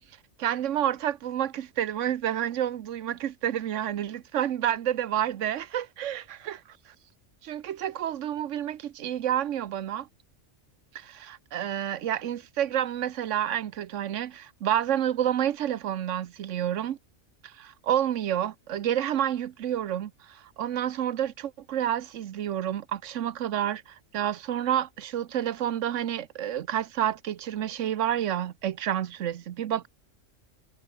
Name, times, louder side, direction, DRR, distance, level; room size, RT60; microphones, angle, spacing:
voice 1, 0.4-6.6 7.4-10.1 10.9-17.0 17.4-29.9, right 10 dB, 80° right, 1.1 m, -29 dB
omnidirectional pair, 1.3 m